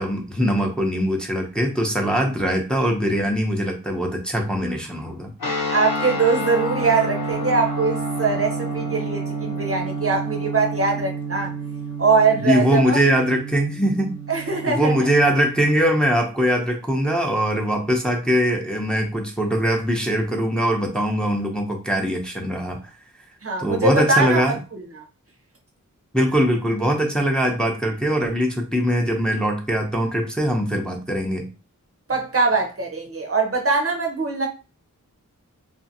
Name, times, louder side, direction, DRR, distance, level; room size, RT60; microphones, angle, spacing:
voice 1, 0.0-5.3 12.4-14.1 14.7-22.9 23.6-24.6 26.1-31.5, equal, 5° left, 0.7 m, -22 dB
sound 1, 5.4-15.7, right 2 dB, 85° left, 1.0 m, -29 dB
voice 2, 5.7-11.5 12.0-13.0 14.3-15.0 23.4-25.0 32.1-34.5, right 4 dB, 45° right, 0.7 m, -22 dB
2.5 x 2.4 x 2.7 m
cardioid pair, 45°, 33 cm